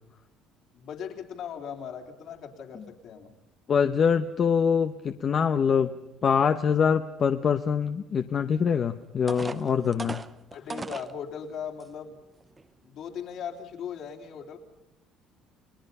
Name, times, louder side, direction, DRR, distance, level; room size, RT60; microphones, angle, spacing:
voice 1, 0.7-3.3 10.5-12.2 12.8-14.6, left 7 dB, 55° left, 2 dB, 3.6 m, -38 dB
voice 2, 3.7-5.9 6.2-10.2, left 7 dB, 35° left, 8 dB, 0.9 m, -24 dB
sound 1, 8.7-8.8 9.3-11.1 11.8-11.9 12.4-12.6, right 3 dB, 15° right, 0.8 m, -37 dB
30.0 x 20.5 x 5.6 m, 0.94 s
cardioid pair, 140°, 0 cm